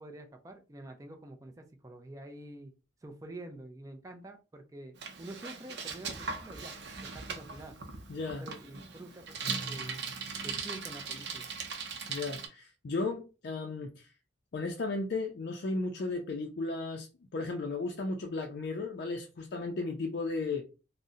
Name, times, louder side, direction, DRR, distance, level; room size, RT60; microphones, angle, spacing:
voice 1, 0.0-2.7 3.0-6.7 7.0-7.8 8.4-10.1 10.4-11.5, right 1 dB, 15° right, 0.4 m, -47 dB
Bicycle, 5.0-12.5, right 5 dB, 60° right, 0.6 m, -39 dB
voice 2, 8.1-8.5 12.1-14.1 14.5-17.1 17.3-20.6, left 3 dB, 55° left, 0.4 m, -35 dB
2.6 x 2.0 x 3.6 m
head